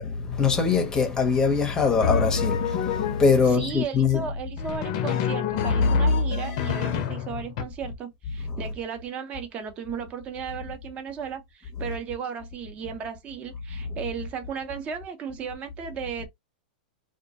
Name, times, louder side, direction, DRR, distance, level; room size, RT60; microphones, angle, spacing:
voice 1, 0.0-4.3 8.5-8.6, left 5 dB, 15° left, 0.7 m, -23 dB
Drum, 2.0-3.5 4.6-7.6, left 5 dB, 50° left, 0.5 m, -26 dB
voice 2, 3.5-16.3, right 7 dB, 25° right, 0.7 m, -35 dB
2.2 x 2.1 x 2.7 m
hypercardioid pair, 140°, 5 cm